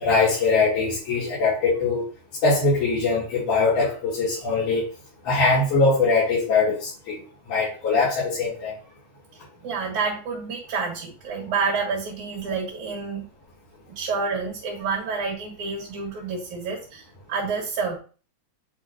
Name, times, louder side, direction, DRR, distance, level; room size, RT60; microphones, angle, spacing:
voice 1, 0.0-2.0 2.4-4.8 5.2-7.2 7.5-8.7, left 3 dB, 90° left, -11 dB, 4.8 m, -22 dB
voice 2, 9.6-13.3 14.0-17.0 17.3-18.0, right 5 dB, 75° right, -4 dB, 3.5 m, -28 dB
10.5 x 4.4 x 2.8 m, 0.37 s
omnidirectional pair, 3.4 m